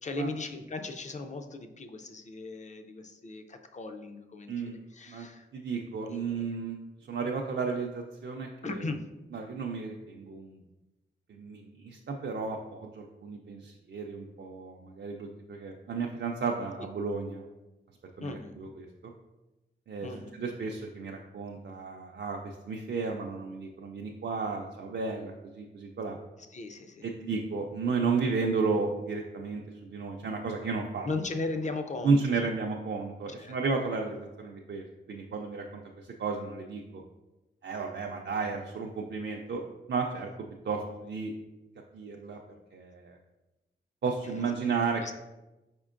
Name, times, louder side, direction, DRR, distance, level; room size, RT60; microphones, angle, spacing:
voice 1, 0.0-5.5 6.1-6.4 8.6-9.1 18.2-18.5 20.0-20.5 26.5-27.1 31.0-32.5 33.4-33.5 44.2-45.1, left 3 dB, 40° left, 5 dB, 0.4 m, -38 dB
voice 2, 4.5-4.8 5.1-5.3 5.5-6.8 7.1-8.9 9.3-10.6 11.3-17.5 18.2-19.1 19.9-20.1 20.4-26.2 27.0-31.1 32.0-36.8 37.6-39.6 39.9-40.3 40.6-41.3 41.9-42.4 42.7-43.2 44.0-45.1, right 4 dB, 60° right, 1 dB, 0.4 m, -33 dB
4.9 x 4.4 x 2.5 m, 1.0 s
wide cardioid pair, 120°, 20 cm